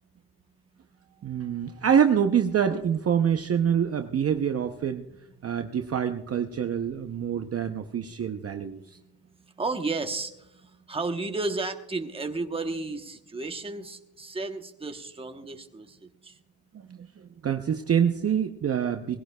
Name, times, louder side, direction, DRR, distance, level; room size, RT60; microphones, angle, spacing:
voice 1, 1.2-5.1 5.4-9.0 16.7-17.0 17.4-19.2, right 8 dB, 35° right, 6 dB, 0.6 m, -26 dB
voice 2, 9.6-16.0 16.2-16.3, right 3 dB, 15° right, 5 dB, 0.9 m, -33 dB
20.5 x 16.5 x 2.2 m, 0.87 s
cardioid pair, 140°, 40 cm